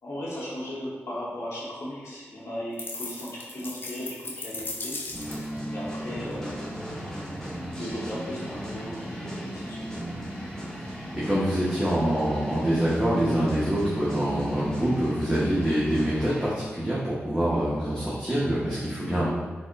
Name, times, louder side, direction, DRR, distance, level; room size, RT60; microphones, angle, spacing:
voice 1, 0.0-5.0 5.7-6.6 7.8-9.9, equal, 85° left, -7 dB, 1.0 m, -36 dB
sound 1, 2.8-5.6, left 3 dB, 50° left, 0.4 m, -37 dB
sound 2, 5.1-16.5, right 1 dB, 10° left, 1.1 m, -35 dB
voice 2, 10.8-19.3, equal, 10° right, -9 dB, 0.6 m, -25 dB
4.2 x 2.0 x 2.5 m, 1.4 s
wide cardioid pair, 85°, 5 cm